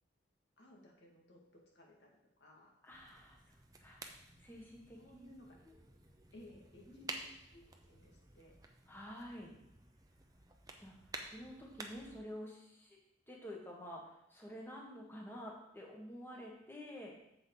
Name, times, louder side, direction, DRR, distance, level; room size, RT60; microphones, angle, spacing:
voice 1, 0.6-1.4 1.7-2.8 5.0-5.6 6.3-8.5, left 1 dB, 75° left, -1 dB, 2.1 m, -60 dB
voice 2, 2.8-5.3 6.9-7.3 8.9-9.5 10.8-13.0 13.3-17.2, equal, 10° left, -2 dB, 1.6 m, -50 dB
sound 1, 2.9-12.2, right 3 dB, 20° right, 0.7 m, -52 dB
7.9 x 7.5 x 4.0 m, 0.80 s
head